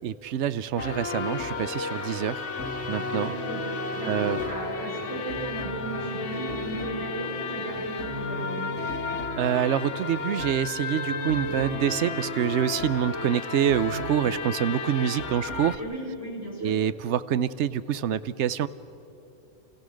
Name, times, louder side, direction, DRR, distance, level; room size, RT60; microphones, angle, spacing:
voice 1, 0.0-2.5 2.9-3.3 4.0-4.4 9.4-15.8 16.6-18.7, right 9 dB, 85° right, 15 dB, 1.0 m, -26 dB
sound 1, 0.8-15.8, left 4 dB, 85° left, 1.5 m, -33 dB
sound 2, 2.5-13.5 13.9-14.3, equal, 70° right, 5.2 m, -38 dB
voice 2, 3.2-3.6 3.9-8.7 15.8-16.7, right 1 dB, 15° right, -5 dB, 6.2 m, -36 dB
28.5 x 16.0 x 6.4 m, 2.8 s
omnidirectional pair, 1.2 m